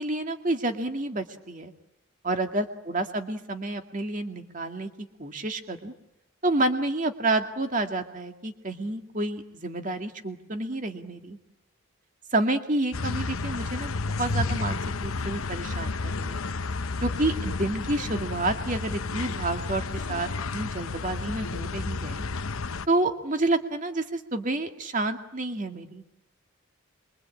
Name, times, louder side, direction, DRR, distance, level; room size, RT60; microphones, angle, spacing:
voice 1, 0.0-1.7 2.2-4.9 5.2-5.9 6.4-11.4 12.3-16.4 17.0-22.2 22.9-26.0, right 2 dB, 40° right, 6 dB, 2.2 m, -29 dB
sound 1, 12.9-22.9, left 3 dB, 90° left, 0.9 m, -31 dB
27.0 x 23.5 x 8.6 m, 0.87 s
head